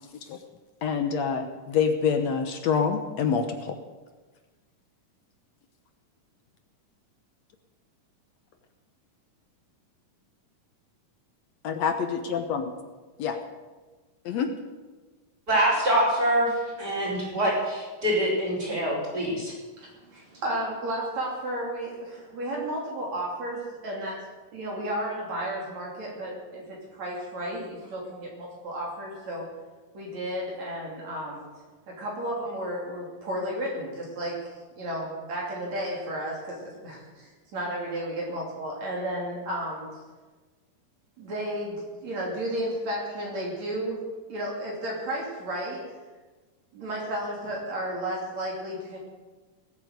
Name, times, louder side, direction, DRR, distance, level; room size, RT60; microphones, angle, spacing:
voice 1, 0.8-3.8 11.6-12.7 13.2-13.4 14.3-14.5, left 6 dB, 65° left, 6 dB, 1.9 m, -26 dB
voice 2, 15.5-16.5 16.8-19.5, right 1 dB, 30° right, -6 dB, 5.5 m, -25 dB
voice 3, 16.8-17.1 19.8-24.2 24.5-29.4 29.9-31.4 31.9-39.8 41.2-44.0 44.3-45.8 46.7-49.0, right 1 dB, 55° right, -3 dB, 4.1 m, -33 dB
19.0 x 9.0 x 8.1 m, 1.3 s
omnidirectional pair, 3.8 m